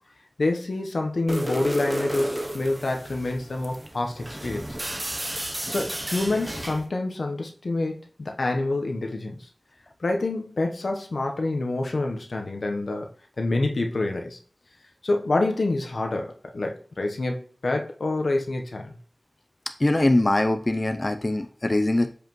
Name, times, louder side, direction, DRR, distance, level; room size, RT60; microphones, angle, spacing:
voice 1, 0.4-4.7 5.7-9.5 10.0-13.1 13.4-14.4 15.0-18.9, left 2 dB, 80° left, 3 dB, 0.9 m, -27 dB
sound 1, 1.3-6.9, right 1 dB, 25° right, 0.8 m, -33 dB
voice 2, 19.8-22.1, left 1 dB, 35° left, 8 dB, 0.5 m, -22 dB
7.2 x 5.0 x 3.1 m, 0.43 s
wide cardioid pair, 60°, 0 cm